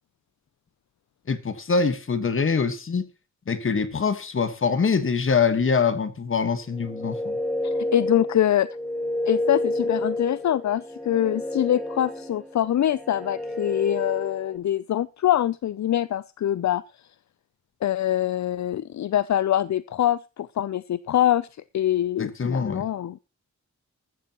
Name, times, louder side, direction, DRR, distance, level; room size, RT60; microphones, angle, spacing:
voice 1, 1.3-3.1 3.5-7.4 22.2-22.8, left 5 dB, 40° left, 1.5 m, -24 dB
sound 1, 6.7-14.6, left 1 dB, ahead, 1.8 m, -30 dB
voice 2, 7.6-8.7 9.3-16.8 17.8-21.5 21.7-23.2, left 11 dB, 65° left, 0.5 m, -24 dB
14.0 x 14.0 x 2.9 m
wide cardioid pair, 165°, 30 cm